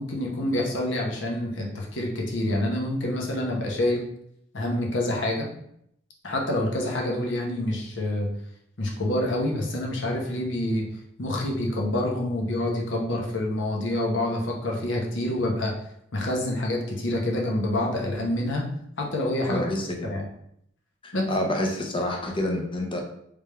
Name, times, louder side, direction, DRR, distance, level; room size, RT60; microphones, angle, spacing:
voice 1, 0.0-4.0 4.5-5.5 6.2-8.3 8.8-10.9 11.2-15.7 16.1-18.7 19.0-19.7 20.0-20.2 21.1-21.3, left 1 dB, 75° left, 0 dB, 1.0 m, -27 dB
voice 2, 19.5-20.1 21.0-23.0, left 1 dB, 25° left, 2 dB, 0.7 m, -28 dB
3.5 x 3.3 x 3.3 m, 0.73 s
head